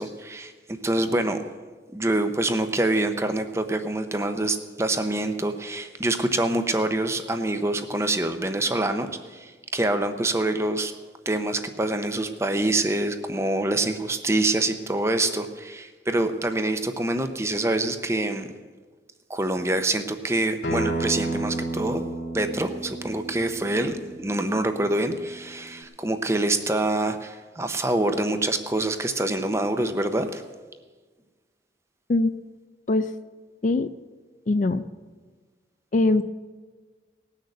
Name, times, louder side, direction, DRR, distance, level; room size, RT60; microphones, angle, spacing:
voice 1, 0.0-1.4 1.9-10.9 11.3-18.5 19.3-22.0 22.3-30.4, right 2 dB, 15° right, 8 dB, 0.7 m, -26 dB
Acoustic guitar, 20.6-25.8, right 2 dB, 80° left, 2.6 m, -32 dB
voice 2, 34.5-34.8 35.9-36.2, left 2 dB, 45° left, 11 dB, 0.4 m, -21 dB
19.0 x 6.6 x 7.8 m, 1.4 s
head